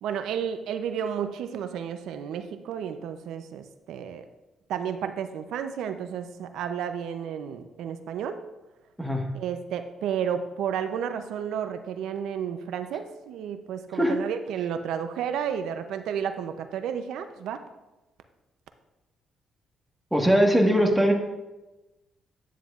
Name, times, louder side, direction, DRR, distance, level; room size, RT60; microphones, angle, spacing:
voice 1, 0.0-4.3 4.7-8.4 9.3-17.6, right 8 dB, 85° right, 9 dB, 0.5 m, -32 dB
voice 2, 20.1-21.1, equal, ahead, 1 dB, 1.4 m, -21 dB
9.1 x 9.1 x 2.4 m, 1.0 s
cardioid pair, 90°, 0 cm